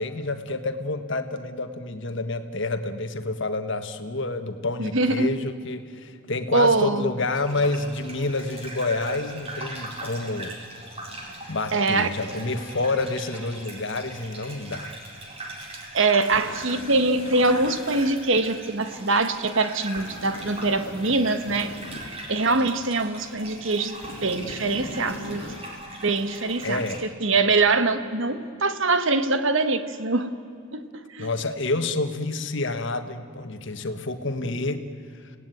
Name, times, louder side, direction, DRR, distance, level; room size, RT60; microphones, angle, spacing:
voice 1, 0.0-10.5 11.5-14.9 26.6-27.1 31.2-34.8, left 2 dB, 60° left, 8 dB, 1.5 m, -28 dB
voice 2, 4.8-5.3 6.5-7.1 11.7-12.1 15.9-21.7 22.3-25.4 26.0-26.8 27.2-30.3 30.7-31.3, right 3 dB, 65° right, 10 dB, 1.4 m, -23 dB
Gurgling / Bathtub (filling or washing), 7.3-27.0, right 1 dB, 30° right, 4.2 m, -40 dB
sound 1, 16.2-18.1 19.9-22.2 24.0-25.6, left 2 dB, 85° left, 1.9 m, -40 dB
27.5 x 18.0 x 9.3 m, 2.4 s
head